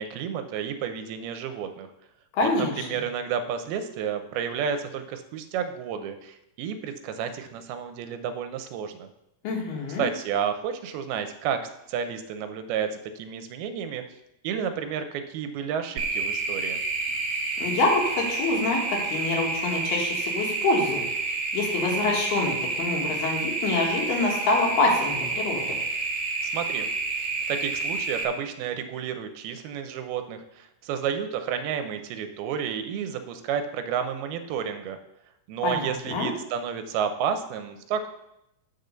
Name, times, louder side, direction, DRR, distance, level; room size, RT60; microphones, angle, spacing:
voice 1, 0.0-1.9 2.4-9.1 10.0-11.6 11.9-14.0 14.4-16.8 26.4-26.9 27.2-35.0 35.5-38.1, right 7 dB, 85° right, 8 dB, 2.6 m, -31 dB
voice 2, 2.3-3.0 9.4-10.1 17.6-21.0 21.5-25.8 35.6-36.3, left 2 dB, 85° left, 0 dB, 3.6 m, -26 dB
sound 1, 16.0-28.2, right 3 dB, 55° right, 2.3 m, -29 dB
8.0 x 5.3 x 6.8 m, 0.87 s
omnidirectional pair, 4.4 m